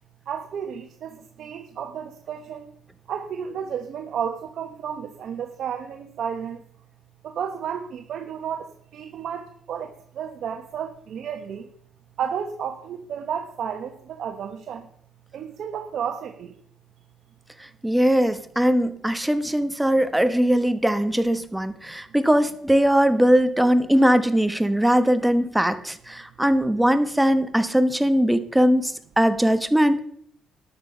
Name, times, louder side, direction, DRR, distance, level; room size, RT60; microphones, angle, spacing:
voice 1, 0.3-2.7 3.1-6.6 7.2-11.7 12.2-14.9 15.3-16.6, right 8 dB, 65° right, 5 dB, 1.1 m, -32 dB
voice 2, 17.6-30.0, equal, 5° right, 11 dB, 1.1 m, -20 dB
12.5 x 9.6 x 5.6 m, 0.64 s
cardioid pair, 90°, 0 cm